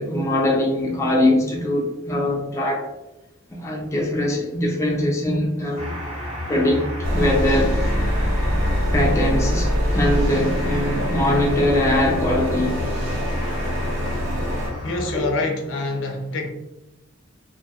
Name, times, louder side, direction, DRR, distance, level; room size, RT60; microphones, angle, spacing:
voice 1, 0.0-2.9 3.5-5.9 6.5-6.9 7.1-7.9 8.4-8.5 8.9-12.8 15.1-15.2, left 1 dB, 15° left, -2 dB, 0.4 m, -22 dB
sound 1, 5.8-15.2, left 2 dB, 30° right, 0.8 m, -31 dB
sound 2, 7.0-14.7, equal, 85° right, 0.6 m, -24 dB
voice 2, 14.8-16.5, left 2 dB, 70° left, 3 dB, 0.5 m, -26 dB
2.6 x 2.2 x 2.7 m, 0.93 s
head